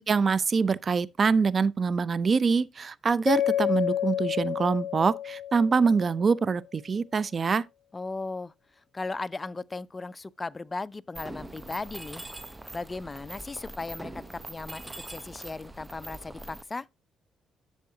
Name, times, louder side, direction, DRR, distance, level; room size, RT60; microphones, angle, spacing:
voice 1, 0.1-7.6, right 5 dB, 40° right, 0.5 m, -25 dB
Mallet percussion, 3.3-6.2, left 11 dB, 80° left, 0.5 m, -29 dB
voice 2, 7.9-8.5 8.9-12.2 12.7-16.9, left 3 dB, 25° left, 0.4 m, -37 dB
Mechanisms, 11.1-16.6, right 1 dB, 15° right, 0.9 m, -42 dB
10.5 x 7.3 x 2.8 m
cardioid pair, 90°, 0 cm